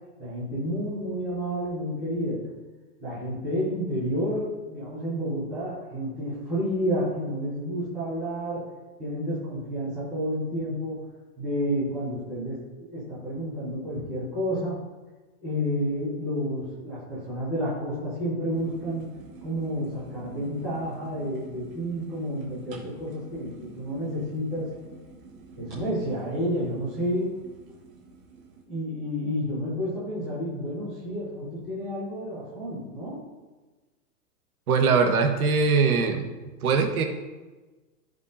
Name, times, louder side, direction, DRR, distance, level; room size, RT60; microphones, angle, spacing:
voice 1, 0.2-2.5 3.0-8.7 9.0-11.1 11.4-14.8 15.4-19.1 19.4-24.7 25.6-27.4 28.7-33.2, equal, 5° right, -14 dB, 0.4 m, -30 dB
sound 1, 18.5-28.6, right 4 dB, 35° right, 1.6 m, -48 dB
voice 2, 34.7-36.2 36.6-37.0, right 5 dB, 70° right, 4 dB, 1.5 m, -21 dB
16.0 x 5.4 x 2.7 m, 1.2 s
supercardioid pair, 175°, 45 cm